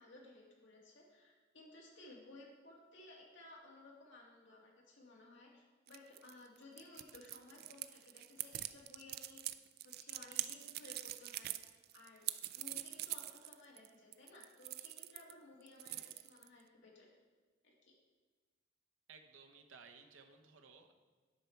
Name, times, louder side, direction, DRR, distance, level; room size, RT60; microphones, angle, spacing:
voice 1, 0.0-9.4 9.8-11.5 11.9-12.3 12.5-17.1 17.6-17.9, left 2 dB, 65° left, -3 dB, 2.0 m, -58 dB
sound 1, 5.9-15.3 15.6-16.6, right 14 dB, 50° right, 0.3 m, -44 dB
voice 2, 19.1-20.9, right 5 dB, 80° right, 6 dB, 0.9 m, -58 dB
10.0 x 5.9 x 4.5 m, 1.4 s
head